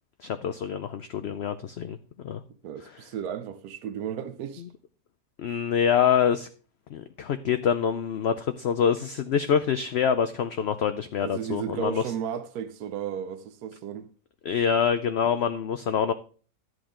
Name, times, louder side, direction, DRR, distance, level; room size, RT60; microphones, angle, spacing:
voice 1, 0.2-2.0 2.2-2.4 5.4-6.5 6.9-12.0 14.4-16.1, left 7 dB, 60° left, 0.7 m, -25 dB
voice 2, 2.6-4.6 11.2-14.1, right 8 dB, 90° right, 1.2 m, -34 dB
12.0 x 7.9 x 3.7 m
omnidirectional pair, 1.5 m